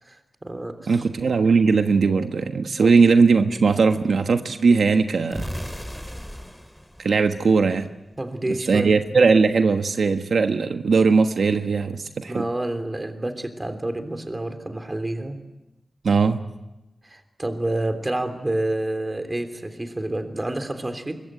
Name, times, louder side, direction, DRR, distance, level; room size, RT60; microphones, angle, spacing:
voice 1, 0.0-1.0 2.8-3.0 8.2-9.0 12.3-15.4 17.0-21.2, right 1 dB, 25° right, 8 dB, 3.4 m, -29 dB
voice 2, 0.9-5.5 7.0-7.9 8.5-12.4 16.0-16.4, right 4 dB, 85° right, 6 dB, 1.3 m, -19 dB
sound 1, 5.3-8.2, equal, 5° left, 2.9 m, -36 dB
25.0 x 23.0 x 9.4 m, 0.99 s
wide cardioid pair, 100°, 0 cm